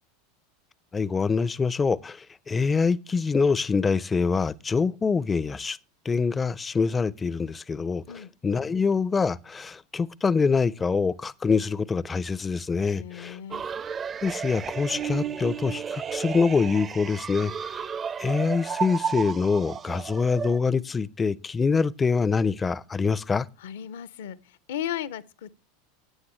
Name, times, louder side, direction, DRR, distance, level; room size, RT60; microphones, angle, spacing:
voice 1, 0.9-5.8 6.0-13.4 14.2-17.9 18.2-23.5, left 5 dB, 20° left, 0.5 m, -25 dB
voice 2, 12.9-13.6 23.6-25.5, left 10 dB, 60° left, 0.6 m, -36 dB
sound 1, 13.5-20.6, right 7 dB, 25° right, 0.6 m, -33 dB
14.5 x 9.6 x 3.1 m
figure-of-eight pair, 80°, 0 cm